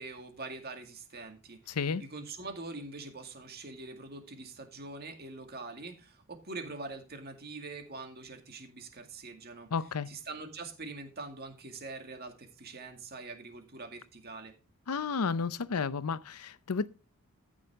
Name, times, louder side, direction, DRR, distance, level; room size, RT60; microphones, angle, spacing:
voice 1, 0.0-9.7 10.1-14.5, right 3 dB, 45° right, 2.2 m, -44 dB
voice 2, 1.7-2.0 9.7-10.1 14.9-16.9, left 5 dB, 90° left, 0.7 m, -32 dB
14.5 x 6.3 x 3.6 m
head